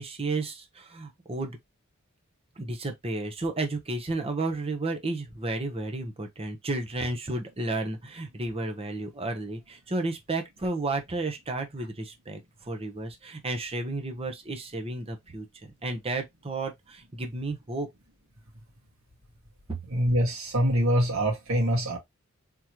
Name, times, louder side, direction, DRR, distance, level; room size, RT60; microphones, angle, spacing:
voice 1, 0.0-1.6 2.6-12.4 12.7-17.9 19.7-19.8, right 2 dB, 30° right, 0.9 m, -32 dB
voice 2, 19.9-22.0, equal, 75° right, 1.9 m, -24 dB
3.7 x 3.0 x 2.9 m
head